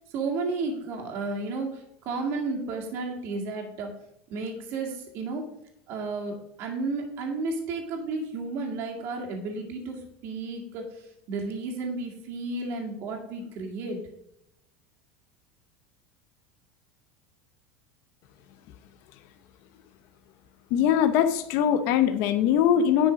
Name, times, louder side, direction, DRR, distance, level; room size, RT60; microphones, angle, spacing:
voice 1, 0.1-3.9 4.3-5.4 5.9-14.0, right 3 dB, 45° right, 1 dB, 2.0 m, -32 dB
voice 2, 20.7-23.1, left 9 dB, 50° left, 9 dB, 0.8 m, -22 dB
9.9 x 5.6 x 5.1 m, 0.77 s
supercardioid pair, 160°, 6 cm